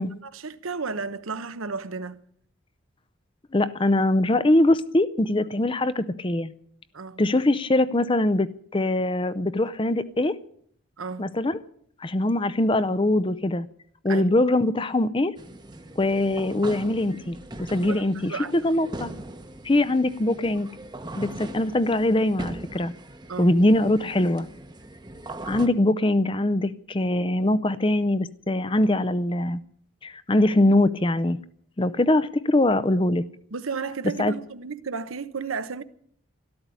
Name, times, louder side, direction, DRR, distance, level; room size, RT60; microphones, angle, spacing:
voice 1, 0.2-2.2 6.9-7.2 11.0-11.3 14.1-14.2 17.8-18.8 23.3-23.5 33.5-35.8, right 5 dB, 75° right, 0.9 m, -33 dB
voice 2, 3.5-6.5 7.2-10.4 11.2-11.6 12.0-13.7 14.0-15.3 16.0-19.1 19.6-20.7 21.2-22.9 23.4-24.5 25.5-29.6 30.0-31.4 31.8-33.3 34.2-34.3, left 1 dB, 25° left, 0.5 m, -22 dB
sound 1, 15.4-25.7, right 2 dB, 20° right, 0.9 m, -40 dB
13.0 x 13.0 x 8.3 m
head